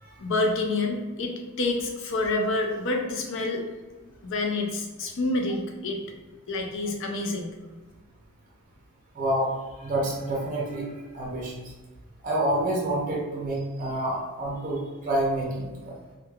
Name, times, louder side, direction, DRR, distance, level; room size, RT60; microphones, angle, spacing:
voice 1, 0.2-3.6 4.2-6.0 6.5-7.5, left 2 dB, 60° left, 2 dB, 0.5 m, -28 dB
voice 2, 9.1-9.5 9.8-11.6 12.2-15.9, right 1 dB, 35° right, -3 dB, 0.5 m, -28 dB
3.1 x 2.1 x 2.3 m, 1.3 s
head